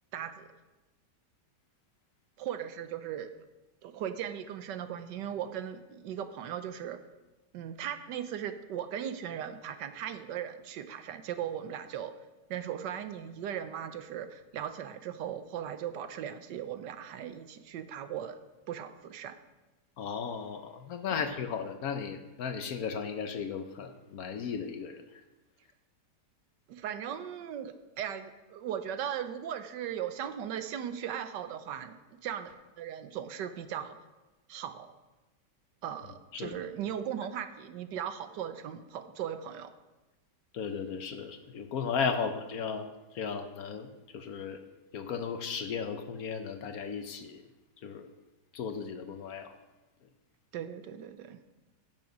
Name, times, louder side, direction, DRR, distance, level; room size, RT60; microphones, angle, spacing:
voice 1, 0.1-0.5 2.4-3.3 3.8-7.0 7.5-12.1 12.5-18.4 18.7-19.4 26.7-34.0 34.5-34.9 35.8-39.7 50.5-51.4, right 9 dB, 80° right, 10 dB, 1.4 m, -38 dB
voice 2, 20.0-25.0 36.3-36.6 40.5-42.9 43.1-44.6 44.9-47.4 47.8-48.1 48.5-49.6, left 6 dB, 65° left, 8 dB, 1.1 m, -35 dB
11.0 x 7.6 x 5.2 m, 1.1 s
omnidirectional pair, 1.9 m